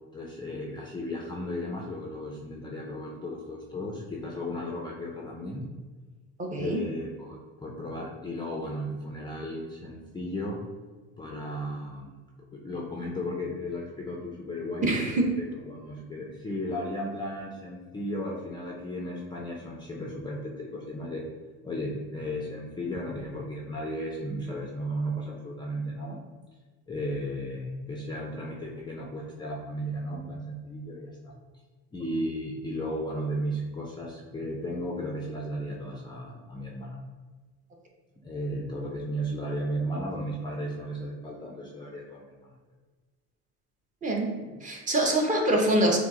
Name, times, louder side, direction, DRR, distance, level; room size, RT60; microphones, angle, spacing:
voice 1, 0.1-5.7 6.6-10.6 11.2-12.1 12.5-14.9 15.6-21.2 21.6-26.2 26.9-31.3 31.9-37.0 38.2-42.5, equal, 15° left, -1 dB, 0.4 m, -35 dB
voice 2, 6.4-6.8 14.8-15.3 44.0-44.3 44.6-46.0, right 1 dB, 20° right, 0 dB, 0.8 m, -24 dB
6.0 x 2.0 x 3.6 m, 1.4 s
cardioid pair, 125°, 34 cm